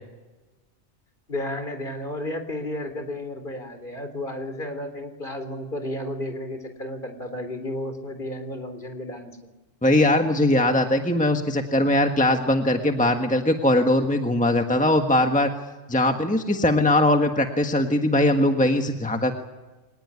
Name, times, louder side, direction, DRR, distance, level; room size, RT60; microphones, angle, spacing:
voice 1, 1.3-9.4, left 1 dB, 45° left, 7 dB, 3.8 m, -32 dB
voice 2, 9.8-15.5 15.9-19.3, left 1 dB, 5° left, 5 dB, 1.5 m, -20 dB
24.0 x 20.0 x 9.6 m, 1.2 s
omnidirectional pair, 1.2 m